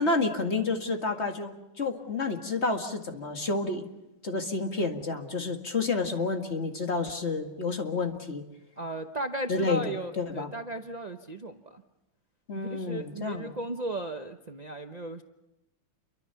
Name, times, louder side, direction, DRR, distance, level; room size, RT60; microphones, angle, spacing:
voice 1, 0.0-3.9 4.2-8.4 9.5-9.8 10.2-10.5 12.5-13.5, left 3 dB, 30° left, 4 dB, 2.1 m, -29 dB
voice 2, 8.8-11.8 12.7-15.2, right 1 dB, 60° right, 5 dB, 0.4 m, -36 dB
29.0 x 23.5 x 5.8 m, 0.93 s
omnidirectional pair, 2.3 m